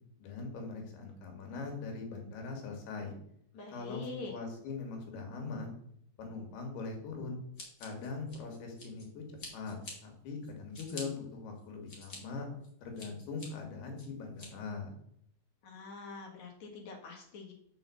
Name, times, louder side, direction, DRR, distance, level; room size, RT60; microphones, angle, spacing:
voice 1, 0.2-3.1 3.7-5.8 6.2-7.4 7.8-9.2 9.5-12.5 12.8-14.9, left 4 dB, 85° left, 2 dB, 3.9 m, -41 dB
voice 2, 3.5-4.3 15.6-17.5, left 3 dB, 55° left, 0 dB, 2.5 m, -45 dB
Scissors, 7.5-9.0 9.4-9.9 10.4-11.0 11.6-12.2 12.6-13.5 14.0-14.5, left 2 dB, 25° left, 2.3 m, -47 dB
6.6 x 5.7 x 7.0 m, 0.70 s
omnidirectional pair, 4.5 m